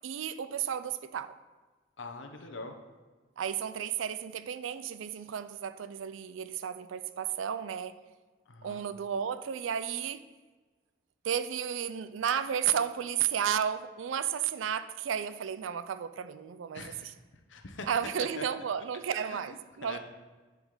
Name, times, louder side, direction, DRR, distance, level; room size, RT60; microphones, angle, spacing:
voice 1, 0.0-1.3 3.4-7.9 8.6-10.2 11.2-17.1 17.9-20.0, right 8 dB, 85° right, 0.4 m, -33 dB
voice 2, 2.0-2.7 8.5-8.8 16.7-17.1 17.5-17.9 18.4-18.5 19.1-19.6 19.8-20.0, left 3 dB, 75° left, 0.9 m, -43 dB
9.5 x 5.0 x 3.8 m
head